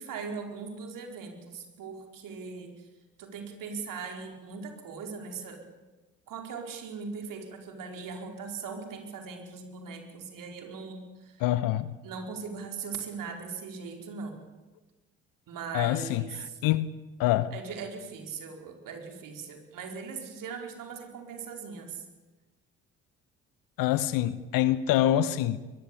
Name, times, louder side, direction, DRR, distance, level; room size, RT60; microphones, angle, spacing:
voice 1, 0.0-2.9 3.2-5.6 6.3-11.4 12.0-14.4 15.5-16.6 17.5-22.0, right 5 dB, 55° right, 4.8 m, -39 dB
voice 2, 11.4-11.9 15.7-16.9 17.2-17.5 23.8-25.6, left 13 dB, 60° left, 1.0 m, -26 dB
22.5 x 21.0 x 8.7 m
figure-of-eight pair, 50°, 38 cm